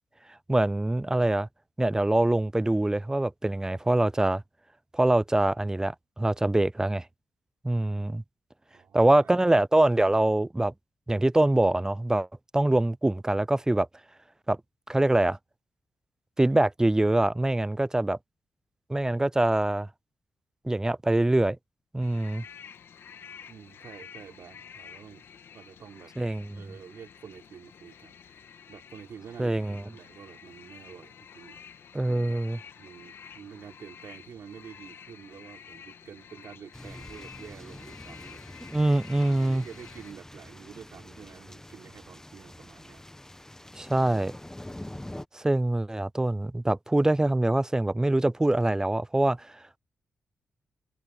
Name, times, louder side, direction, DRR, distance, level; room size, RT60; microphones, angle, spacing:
voice 1, 0.5-1.5 1.8-4.4 4.9-7.0 7.6-8.2 8.9-10.7 11.1-12.3 12.5-13.9 14.5-14.6 14.9-15.4 16.4-18.2 18.9-19.9 20.6-21.6 21.9-22.4 26.2-26.4 29.4-29.8 31.9-32.6 38.7-39.6 43.8-44.3 45.3-49.5, right 1 dB, 15° right, 0.4 m, -24 dB
voice 2, 8.7-9.4 23.5-25.3 25.5-26.1 26.5-32.4 32.8-38.4 39.1-43.4, right 7 dB, 70° right, 4.4 m, -48 dB
sound 1, 22.0-40.1, left 7 dB, 70° left, 2.5 m, -50 dB
sound 2, 36.7-45.3, left 1 dB, 10° left, 1.4 m, -45 dB
supercardioid pair, 40°, 4 cm